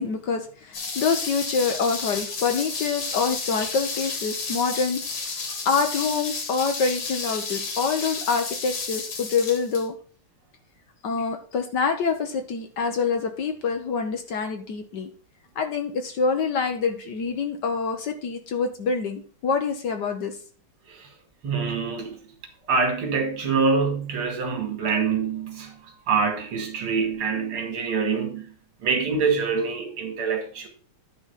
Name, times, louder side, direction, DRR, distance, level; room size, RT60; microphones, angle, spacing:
voice 1, 0.0-5.0 5.6-9.9 11.0-15.1 15.5-20.4, left 5 dB, 60° left, 1.4 m, -26 dB
sound 1, 0.7-9.9, left 4 dB, 75° left, 2.8 m, -32 dB
voice 2, 21.4-22.2 22.7-28.5 28.8-30.7, right 5 dB, 75° right, 2.8 m, -25 dB
11.0 x 3.9 x 5.6 m
omnidirectional pair, 2.4 m